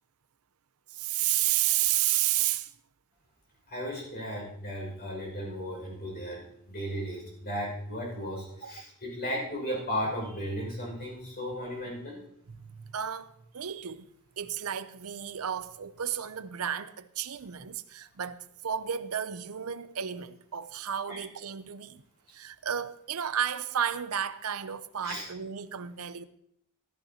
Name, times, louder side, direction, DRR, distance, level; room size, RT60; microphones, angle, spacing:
voice 1, 0.9-2.7 8.6-8.7 12.5-14.1 14.4-22.0 22.3-26.2, right 10 dB, 70° right, 0.6 m, -32 dB
voice 2, 3.7-12.2 21.1-21.2 25.0-25.2, equal, 45° left, 5.9 m, -35 dB
14.5 x 13.5 x 2.9 m
head